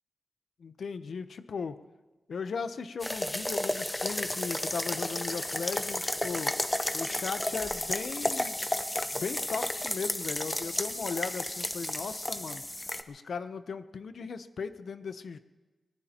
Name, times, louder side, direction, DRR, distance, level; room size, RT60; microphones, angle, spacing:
voice 1, 0.6-1.8 2.3-6.5 6.9-8.6 9.1-12.6 13.1-15.4, left 5 dB, 75° left, 10 dB, 0.7 m, -37 dB
sound 1, 3.0-13.0, left 1 dB, 15° left, 0.9 m, -32 dB
24.5 x 19.5 x 2.9 m, 1.2 s
wide cardioid pair, 90°, 0 cm